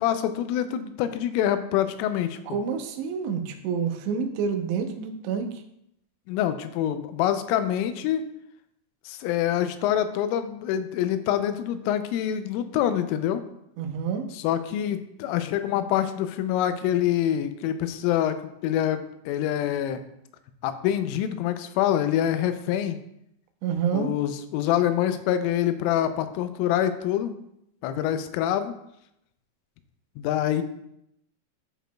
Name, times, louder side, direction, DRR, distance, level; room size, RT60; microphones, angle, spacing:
voice 1, 0.0-2.4 6.3-8.2 9.1-13.4 14.3-20.0 20.6-23.0 23.9-27.3 27.8-28.7 30.2-30.6, left 11 dB, 90° left, 10 dB, 3.2 m, -26 dB
voice 2, 2.5-5.6 13.8-14.3 23.6-24.1, right 6 dB, 80° right, 5 dB, 2.6 m, -28 dB
12.0 x 4.9 x 2.3 m, 0.78 s
omnidirectional pair, 5.7 m